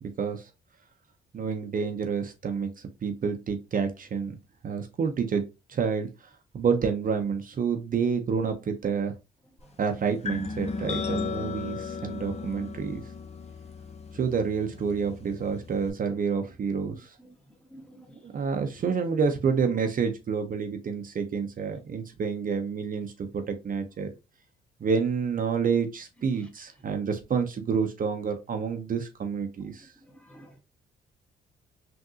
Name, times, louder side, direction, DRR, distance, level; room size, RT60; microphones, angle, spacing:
voice 1, 0.0-0.5 1.3-2.7 3.0-4.4 4.6-6.1 6.5-9.1 9.8-13.0 14.1-17.1 18.2-24.1 24.8-29.9, right 6 dB, 45° right, 0.7 m, -28 dB
sound 1, 10.2-15.9, left 4 dB, 35° left, 0.6 m, -36 dB
voice 2, 17.7-18.2 30.1-30.6, equal, 5° left, 1.3 m, -50 dB
3.6 x 2.6 x 2.6 m
supercardioid pair, 65°, 19 cm